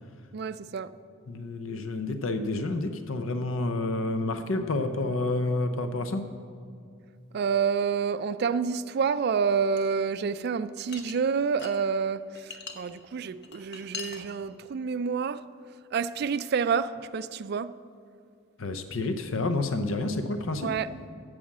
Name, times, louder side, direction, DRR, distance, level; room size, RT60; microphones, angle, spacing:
voice 1, 0.3-0.9 7.3-15.4 15.9-17.7 20.6-20.9, right 6 dB, 50° right, 0.3 m, -28 dB
voice 2, 1.3-6.2 18.6-20.7, left 2 dB, 70° left, 0.6 m, -29 dB
sound 1, 9.8-9.9 10.9-11.8 12.1-12.7 13.3-14.2, left 5 dB, 55° left, 1.0 m, -40 dB
14.5 x 5.0 x 7.3 m
head